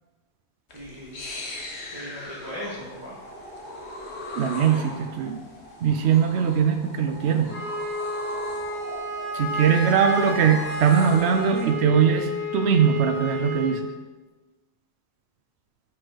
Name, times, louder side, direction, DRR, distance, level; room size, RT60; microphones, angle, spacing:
sound 1, 0.7-11.7, left 1 dB, 85° left, 1.5 m, -39 dB
voice 1, 0.7-1.3 1.9-3.2 4.6-4.9 9.4-10.0, equal, 20° right, -9 dB, 1.7 m, -39 dB
voice 2, 4.4-5.4 5.8-7.5 9.3-13.9, right 7 dB, 90° right, 6 dB, 0.9 m, -21 dB
Wind instrument woodwind instrument, 7.5-13.8, left 1 dB, 70° left, 2.1 m, -31 dB
6.1 x 6.0 x 4.8 m, 1.2 s
omnidirectional pair, 1.1 m